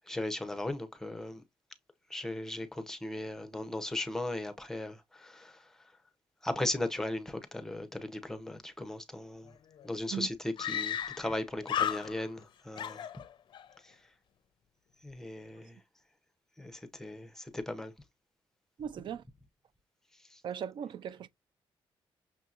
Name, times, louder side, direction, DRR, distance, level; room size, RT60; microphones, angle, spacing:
voice 1, 0.0-1.4 2.1-5.6 6.4-9.5 9.8-10.3 10.7-13.0 15.0-15.8 16.6-17.9, left 1 dB, 5° left, 0.6 m, -37 dB
Screaming, 9.5-9.6 9.8-9.9 10.6-11.4 11.6-12.4 12.8-13.7, left 9 dB, 55° left, 0.5 m, -34 dB
voice 2, 18.8-19.2 20.4-21.3, right 8 dB, 55° right, 0.4 m, -38 dB
6.1 x 2.8 x 2.4 m
cardioid pair, 135°, 9 cm